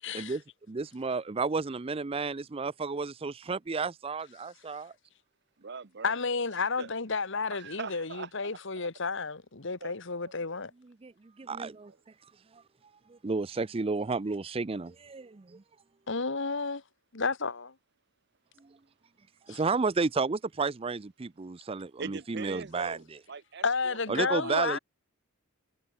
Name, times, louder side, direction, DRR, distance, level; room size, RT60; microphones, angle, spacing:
voice 1, 0.0-0.4 6.0-10.7 16.1-16.8 17.1-17.7 19.5-19.6 23.6-24.8, left 4 dB, 60° left, 1.5 m, -31 dB
voice 2, 0.7-4.9 11.0-11.1 11.4-11.9 13.1-15.6 19.5-23.0 24.1-24.8, right 4 dB, 25° right, 0.5 m, -32 dB
voice 3, 5.6-6.2 6.8-6.9 7.5-8.9 9.8-10.3 11.4-12.0 22.0-24.8, right 5 dB, 55° right, 0.8 m, -43 dB
head